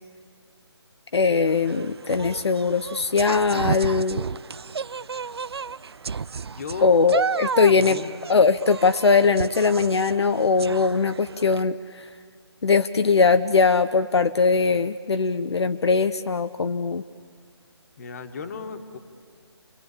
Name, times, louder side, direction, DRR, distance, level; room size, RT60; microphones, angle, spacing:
voice 1, 1.1-4.2 6.8-8.0 8.3-12.1 12.6-17.0, left 4 dB, 70° left, 9 dB, 0.8 m, -21 dB
sound 1, 1.5-11.6, right 5 dB, 65° right, 0.6 m, -32 dB
voice 2, 6.6-7.0 7.8-8.1 18.0-19.0, left 5 dB, 35° left, 6 dB, 1.8 m, -35 dB
30.0 x 22.0 x 8.6 m, 2.1 s
figure-of-eight pair, 160°, 15 cm